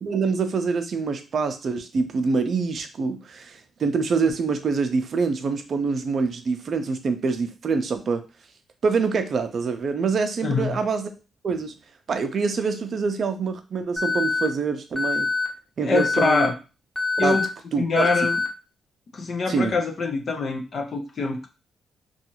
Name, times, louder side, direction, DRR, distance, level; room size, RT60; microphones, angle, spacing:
voice 1, 0.0-8.2 8.8-11.1 11.4-11.7 12.1-15.3 15.8-16.5 17.2-17.4 17.7-18.3 19.5-19.7, right 4 dB, 55° right, 7 dB, 0.5 m, -25 dB
voice 2, 10.4-10.8 15.8-16.5 17.2-17.5 17.8-18.4 19.1-21.5, left 4 dB, 55° left, 4 dB, 0.5 m, -24 dB
Alarm, 14.0-14.5 15.0-15.5 16.0-16.5 17.0-17.5 18.0-18.5, left 3 dB, 5° left, 0.7 m, -24 dB
2.6 x 2.3 x 2.9 m, 0.31 s
cardioid pair, 75°, 0 cm